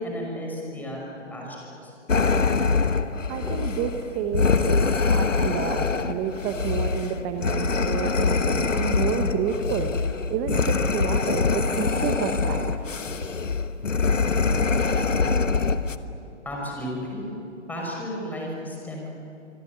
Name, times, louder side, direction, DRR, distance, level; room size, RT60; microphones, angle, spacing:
voice 1, 0.0-1.9 15.2-15.5 16.4-17.2 17.7-19.1, equal, 5° left, -2 dB, 5.7 m, -33 dB
sound 1, 2.1-16.0, left 4 dB, 90° left, 1.4 m, -24 dB
voice 2, 3.3-12.9, right 7 dB, 15° right, 6 dB, 1.1 m, -30 dB
26.0 x 24.5 x 9.4 m, 2.8 s
figure-of-eight pair, 140°, 37 cm